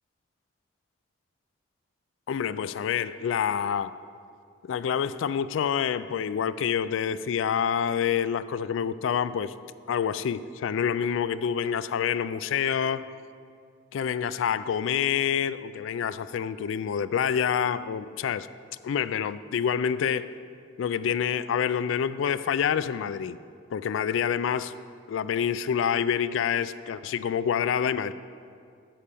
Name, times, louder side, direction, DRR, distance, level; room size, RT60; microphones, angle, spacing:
voice 1, 2.3-4.0 4.6-9.5 9.9-13.1 13.9-18.5 18.8-20.3 20.8-23.4 23.7-24.7 25.1-28.1, left 8 dB, 80° left, 15 dB, 0.3 m, -27 dB
10.0 x 5.0 x 6.9 m, 2.3 s
head